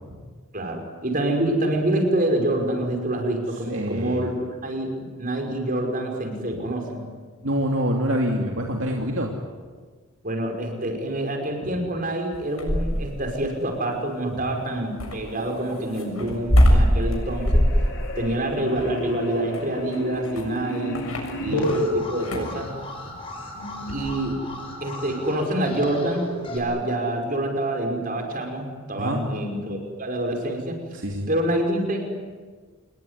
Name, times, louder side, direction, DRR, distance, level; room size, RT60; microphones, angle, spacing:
voice 1, 0.5-7.0 10.2-17.6 18.2-21.1 21.4-22.7 23.5-24.4 24.8-30.8 31.3-32.2, right 1 dB, 40° right, 4 dB, 5.4 m, -26 dB
voice 2, 3.7-4.3 7.4-9.3 14.3-14.5 21.4-21.7 29.0-29.2 30.9-31.3, equal, 60° right, 0 dB, 2.7 m, -26 dB
sound 1, 12.3-13.2 15.0-21.8 22.2-22.6 23.9-24.2, equal, 75° left, 7.1 m, -22 dB
sound 2, 15.8-16.4 16.6-21.8, equal, 55° left, 4.6 m, -33 dB
Alarm, 21.5-26.6, left 1 dB, 25° left, 6.4 m, -36 dB
28.0 x 21.0 x 9.8 m, 1.5 s
head